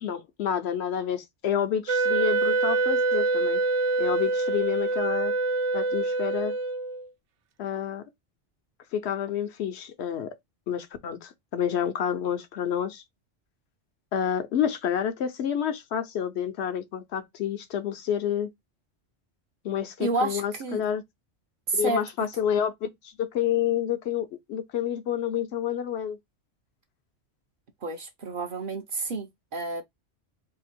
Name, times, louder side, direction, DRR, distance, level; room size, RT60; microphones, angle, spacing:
voice 1, 0.0-3.6 4.0-5.3 5.7-6.5 7.6-8.0 8.9-10.3 10.7-13.0 14.1-18.5 19.6-21.0 21.7-26.2, left 9 dB, 70° left, 0.9 m, -29 dB
Wind instrument woodwind instrument, 1.9-7.1, right 3 dB, 85° right, 0.9 m, -25 dB
voice 2, 20.0-20.8 21.7-22.0 27.8-29.8, right 3 dB, 55° right, 0.7 m, -30 dB
2.8 x 2.4 x 4.2 m
omnidirectional pair, 1.2 m